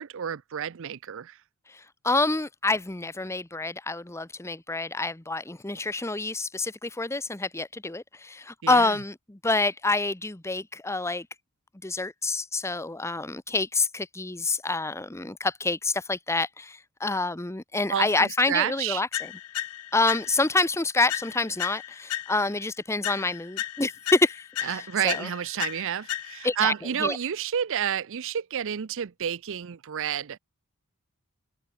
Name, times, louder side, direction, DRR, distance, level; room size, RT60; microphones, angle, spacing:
voice 1, 0.0-1.4 8.6-8.9 17.9-19.0 24.6-30.4, right 9 dB, 60° right, 0.5 m, -30 dB
voice 2, 1.7-11.3 11.8-19.3 19.9-25.3 26.4-26.7 27.0-27.2, left 3 dB, 10° left, 0.9 m, -27 dB
sound 1, 19.1-20.6 21.1-22.6 23.0-26.6, left 12 dB, 80° left, 0.5 m, -35 dB
open air
head